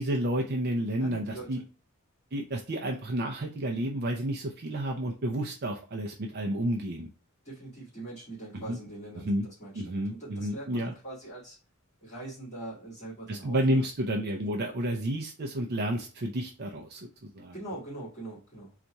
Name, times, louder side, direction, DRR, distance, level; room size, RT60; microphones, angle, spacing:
voice 1, 0.0-1.6 2.3-7.1 8.7-8.8 9.2-9.5 9.8-10.9 13.3-17.1 17.3-17.5, right 1 dB, 50° right, 1 dB, 0.6 m, -30 dB
voice 2, 1.0-1.6 7.4-11.6 12.0-13.9 17.5-18.7, right 2 dB, 30° left, -12 dB, 2.0 m, -42 dB
4.0 x 2.5 x 4.4 m, 0.36 s
head